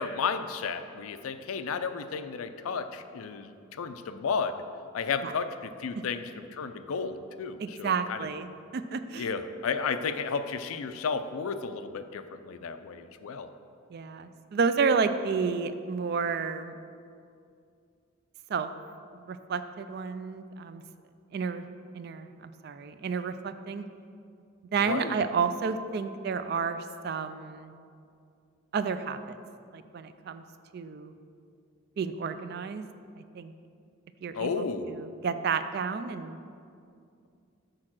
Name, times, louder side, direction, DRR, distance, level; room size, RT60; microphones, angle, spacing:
voice 1, 0.0-4.5 4.9-8.2 9.1-13.5 24.8-25.2 34.3-35.0, left 5 dB, 90° left, 10 dB, 0.4 m, -33 dB
voice 2, 7.6-9.3 13.9-16.7 18.5-18.7 19.3-20.8 21.3-21.7 21.9-23.8 24.7-27.7 28.7-29.4 29.7-30.4 30.7-31.1 32.0-32.8 33.2-33.5 34.2-36.4, right 5 dB, 50° right, 11 dB, 0.3 m, -31 dB
6.5 x 4.8 x 6.0 m, 2.4 s
head